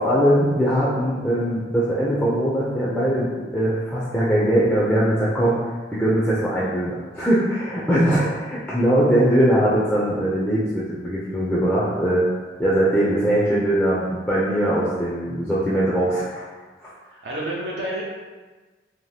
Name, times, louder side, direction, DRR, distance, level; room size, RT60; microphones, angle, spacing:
voice 1, 0.0-5.6 5.9-12.2 12.6-16.5 16.8-16.9, right 1 dB, 5° left, -8 dB, 0.3 m, -21 dB
voice 2, 17.0-18.0, right 1 dB, 65° right, -4 dB, 0.4 m, -29 dB
2.7 x 2.1 x 3.1 m, 1.4 s
head